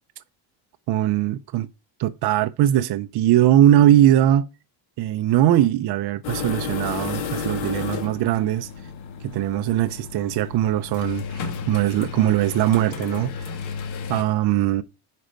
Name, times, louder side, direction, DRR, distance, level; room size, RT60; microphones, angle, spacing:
voice 1, 0.9-1.7 2.0-4.5 5.0-8.7 9.2-13.3 14.1-14.8, right 12 dB, 55° right, 0.6 m, -20 dB
sound 1, 6.2-14.2, left 6 dB, 70° left, 2.3 m, -32 dB
9.6 x 5.2 x 5.1 m
cardioid pair, 150°, 49 cm